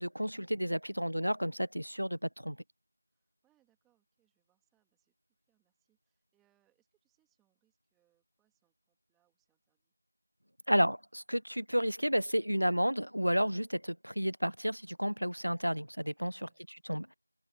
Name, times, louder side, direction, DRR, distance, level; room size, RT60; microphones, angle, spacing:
voice 1, 0.0-2.6 10.7-16.5 16.9-17.1, equal, 75° right, 1.2 m, -31 dB
voice 2, 3.1-9.9 16.2-16.7, right 14 dB, ahead, 2.9 m, -79 dB
figure-of-eight pair, 175°, 0 cm